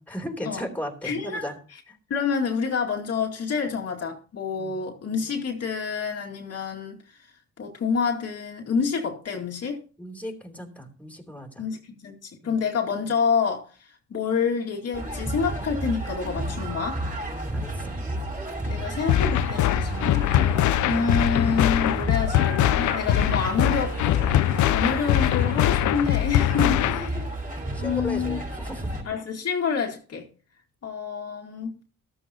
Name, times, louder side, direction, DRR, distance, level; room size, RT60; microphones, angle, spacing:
voice 1, 0.0-1.6 1.9-2.0 4.6-4.8 10.0-11.7 12.4-12.6 17.3-18.0 26.8-27.3 27.7-28.9, left 1 dB, 5° left, 3.0 m, -36 dB
voice 2, 1.0-1.5 2.1-7.0 7.6-9.8 11.6-13.7 14.1-17.0 18.7-20.3 20.9-24.0 24.7-27.1 27.8-28.4 29.1-30.3 30.8-31.8, left 5 dB, 55° left, 2.2 m, -27 dB
sound 1, 14.9-29.0, right 1 dB, 25° right, 5.6 m, -32 dB
sound 2, 19.1-27.1, left 13 dB, 75° left, 0.6 m, -22 dB
14.0 x 13.0 x 2.9 m
cardioid pair, 90°, 30 cm